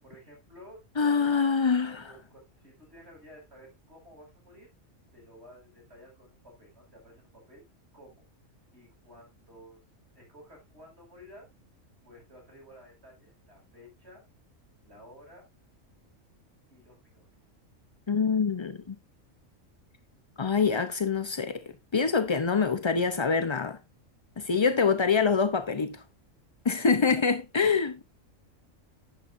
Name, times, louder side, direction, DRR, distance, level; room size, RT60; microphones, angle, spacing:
voice 1, 0.0-1.5 1.9-4.7 5.1-7.6 7.9-8.2 8.7-9.8 10.1-11.5 12.0-14.2 14.8-15.5 16.7-17.3 26.8-26.9, equal, 55° right, 5.8 m, -53 dB
voice 2, 1.0-2.1 18.1-19.0 20.4-21.6 21.9-23.8 24.4-26.0 26.6-28.0, left 5 dB, 35° left, 0.4 m, -25 dB
10.5 x 10.0 x 2.6 m
omnidirectional pair, 1.4 m